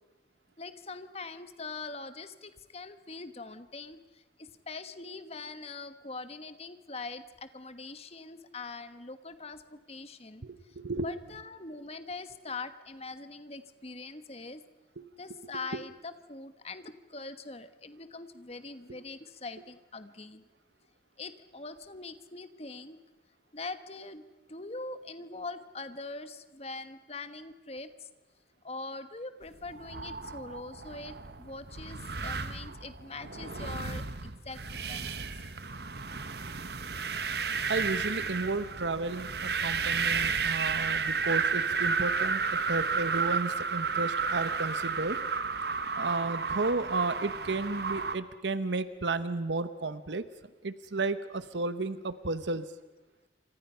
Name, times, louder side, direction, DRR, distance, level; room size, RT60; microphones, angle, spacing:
voice 1, 0.6-4.0 4.4-10.5 11.0-14.6 15.2-20.4 21.2-23.0 23.5-24.2 24.5-28.1 28.6-34.6 34.9-35.3, left 3 dB, 35° left, 11 dB, 1.3 m, -42 dB
voice 2, 10.4-11.1 15.0-15.1 15.7-15.8 37.7-45.2 45.9-50.3 50.6-52.6, right 3 dB, 75° right, 13 dB, 1.0 m, -33 dB
sound 1, 29.6-48.2, right 5 dB, 60° right, 1.3 m, -32 dB
28.5 x 26.0 x 5.7 m, 1.1 s
head